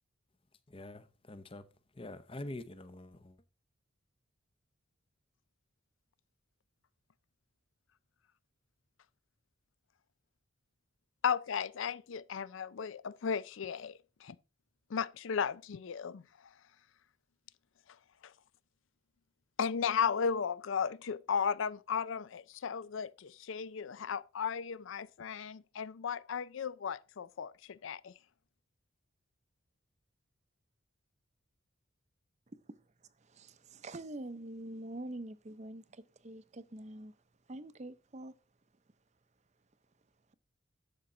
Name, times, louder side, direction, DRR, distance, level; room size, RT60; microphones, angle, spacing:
voice 1, 0.7-1.6 2.0-3.4, left 1 dB, 25° left, 0.7 m, -45 dB
voice 2, 11.2-14.4 14.9-16.2 19.6-28.1, left 6 dB, 65° left, 0.4 m, -35 dB
voice 3, 33.2-37.1 37.5-38.3, right 1 dB, 35° right, 0.6 m, -45 dB
11.5 x 7.1 x 3.8 m
head